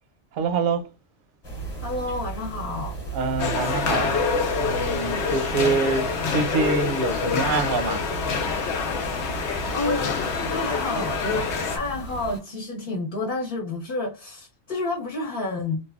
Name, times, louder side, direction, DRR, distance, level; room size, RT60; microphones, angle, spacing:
voice 1, 0.3-0.9 3.1-4.2 4.6-8.0, right 5 dB, 55° right, 0.7 m, -25 dB
sound 1, 1.4-12.4, right 3 dB, 20° left, 1.1 m, -36 dB
voice 2, 1.8-3.0 5.1-5.3 9.7-10.1 10.5-15.8, left 2 dB, 55° left, 1.1 m, -29 dB
sound 2, 3.4-11.8, left 5 dB, 75° left, 0.9 m, -26 dB
3.2 x 2.2 x 2.3 m
omnidirectional pair, 1.2 m